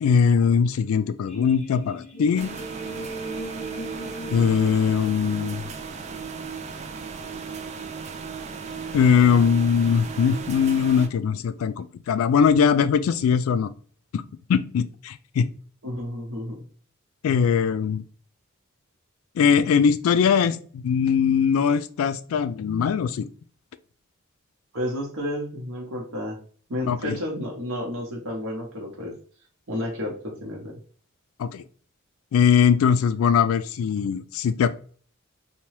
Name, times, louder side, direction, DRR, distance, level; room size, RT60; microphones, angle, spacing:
voice 1, 0.0-2.5 4.3-5.7 8.9-13.7 14.1-14.2 14.5-15.5 17.2-18.0 19.4-23.3 26.9-27.2 31.4-31.6 32.3-34.7, left 6 dB, 85° left, 13 dB, 0.3 m, -21 dB
sound 1, 1.3-6.1, right 1 dB, 30° left, 0.7 m, -38 dB
sound 2, 2.4-11.1, right 5 dB, 35° right, 0.3 m, -36 dB
voice 2, 15.8-16.7 24.7-26.4 26.7-29.2 29.7-30.8, left 1 dB, 75° right, -2 dB, 0.8 m, -31 dB
2.8 x 2.2 x 3.1 m, 0.43 s
head